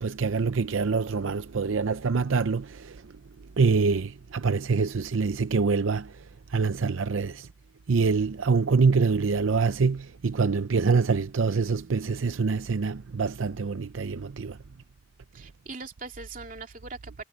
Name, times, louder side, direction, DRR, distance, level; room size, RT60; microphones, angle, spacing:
voice 1, 0.0-3.0 3.6-6.1 6.5-7.5 7.9-14.6, right 4 dB, 85° right, 0.6 m, -25 dB
voice 2, 15.3-17.2, right 3 dB, 45° right, 3.2 m, -41 dB
head